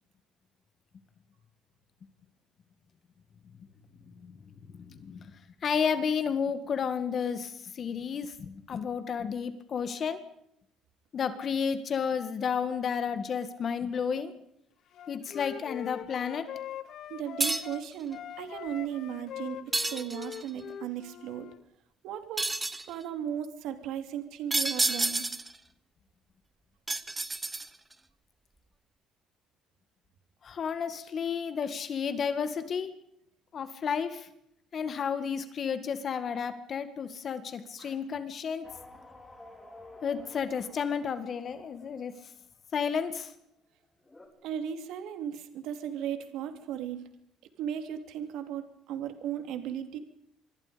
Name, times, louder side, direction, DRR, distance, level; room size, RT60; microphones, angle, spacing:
voice 1, 4.7-5.3 5.6-10.2 11.1-14.3 15.1-16.5 30.4-32.9 33.5-34.3 34.7-38.7 40.0-42.1 42.7-43.3, left 6 dB, 35° left, 11 dB, 1.9 m, -32 dB
Wind instrument woodwind instrument, 14.9-17.8 18.1-21.6, left 10 dB, 50° left, 1.1 m, -42 dB
voice 2, 17.1-21.5 22.0-22.5 22.9-25.3 37.8-37.9 44.4-47.1 47.6-50.0, right 9 dB, 75° right, 8 dB, 3.0 m, -36 dB
sound 1, 17.4-17.9 19.7-20.5 22.4-22.9 24.5-25.6 26.9-27.9, right 2 dB, 10° right, 1.3 m, -30 dB
sound 2, 38.6-43.1 43.5-43.6 43.8-44.3, left 2 dB, 10° left, 4.4 m, -52 dB
26.5 x 24.0 x 5.2 m, 0.76 s
cardioid pair, 155°, 0 cm